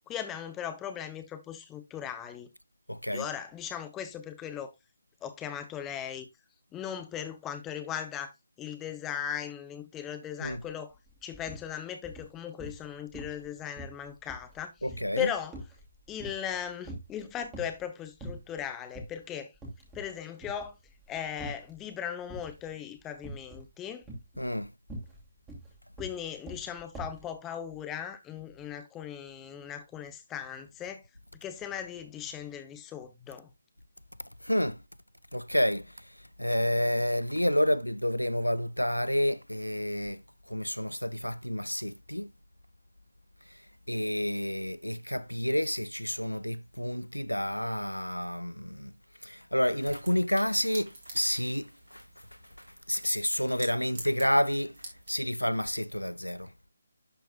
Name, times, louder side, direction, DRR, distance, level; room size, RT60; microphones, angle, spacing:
voice 1, 0.1-2.5 3.1-4.7 5.2-6.3 6.7-11.0 11.2-14.7 15.2-15.6 16.1-19.5 19.9-20.7 21.1-24.0 26.0-31.0 31.4-33.5, left 9 dB, 10° left, 0.8 m, -38 dB
voice 2, 2.9-3.3 10.4-10.6 14.8-15.3 24.4-24.7 34.4-34.8 35.3-36.0 36.4-40.2 40.5-42.3 43.9-48.9 49.2-52.0 52.9-54.7 55.1-56.5, equal, 90° left, 0.5 m, -29 dB
sound 1, 10.5-10.6 10.9-11.7 12.0-12.9 13.1-13.5 13.8-16.6 16.8-17.8 18.2-18.6 19.0-19.1 19.6-20.1 20.4-21.8 22.3-22.7 23.2-23.7 24.0-27.3, right 1 dB, 10° right, 2.7 m, -43 dB
sound 2, 49.7-55.2, right 2 dB, 40° right, 3.4 m, -49 dB
11.5 x 4.6 x 2.4 m
figure-of-eight pair, 150°, 0 cm